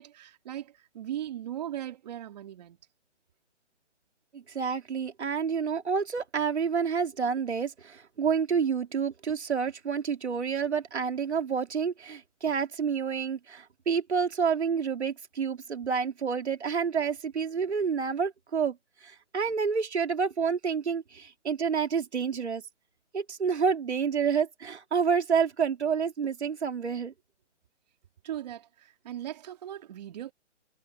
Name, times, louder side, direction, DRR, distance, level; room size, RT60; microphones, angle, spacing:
voice 1, 0.0-2.8 28.2-30.3, right 11 dB, 35° right, 2.7 m, -38 dB
voice 2, 4.3-18.8 19.0-22.6 23.1-27.1, right 6 dB, 65° right, 3.1 m, -29 dB
hypercardioid pair, 160°, 37 cm